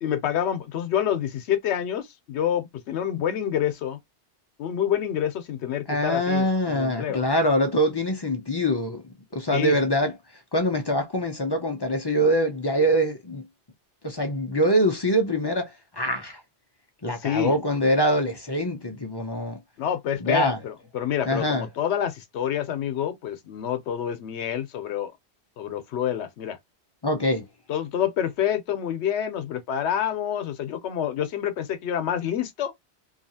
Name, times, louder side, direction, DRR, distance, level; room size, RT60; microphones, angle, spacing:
voice 1, 0.0-4.0 4.6-7.3 9.5-9.8 17.2-17.6 19.8-25.1 25.6-26.6 27.7-32.7, left 9 dB, 80° left, 0.9 m, -27 dB
voice 2, 5.9-10.1 10.5-13.4 14.0-16.4 17.0-19.6 20.2-20.6 21.3-21.7 27.0-27.4, equal, 40° left, 0.3 m, -24 dB
2.7 x 2.4 x 2.7 m
omnidirectional pair, 1.1 m